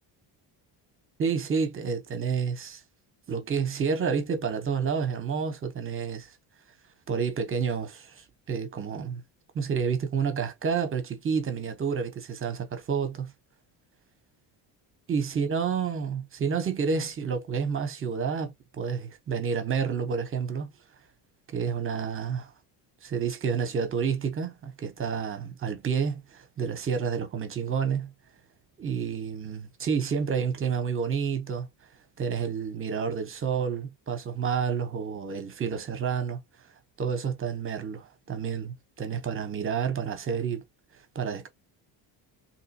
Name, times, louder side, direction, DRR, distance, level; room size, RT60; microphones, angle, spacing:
voice 1, 1.2-2.8 3.3-6.3 7.1-9.2 9.5-13.3 15.1-20.7 21.5-22.5 23.0-28.1 28.8-31.7 32.2-36.4 37.0-40.6 41.1-41.5, right 6 dB, 30° right, 0.8 m, -29 dB
3.7 x 2.8 x 2.7 m
cardioid pair, 165°, 44 cm